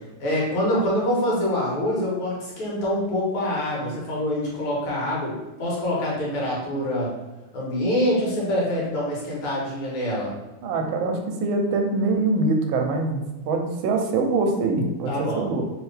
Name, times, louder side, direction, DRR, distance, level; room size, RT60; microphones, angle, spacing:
voice 1, 0.2-5.3 5.6-7.1 7.5-10.3 15.1-15.5, left 1 dB, 80° left, -5 dB, 2.0 m, -25 dB
voice 2, 10.6-15.6, right 3 dB, 75° right, 3 dB, 1.3 m, -24 dB
3.5 x 3.2 x 3.2 m, 1.1 s
omnidirectional pair, 2.4 m